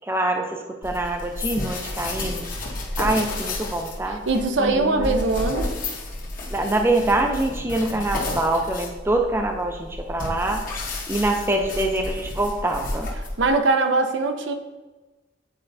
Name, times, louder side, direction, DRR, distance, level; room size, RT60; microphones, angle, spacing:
voice 1, 0.1-2.5 3.0-4.2 4.6-5.1 6.5-13.1, right 2 dB, 10° right, 3 dB, 0.4 m, -25 dB
sound 1, 0.8-13.6, left 2 dB, 45° left, 1.0 m, -32 dB
voice 2, 4.1-5.7 13.4-14.5, right 3 dB, 70° right, 6 dB, 0.6 m, -21 dB
8.7 x 4.3 x 2.6 m, 1.2 s
head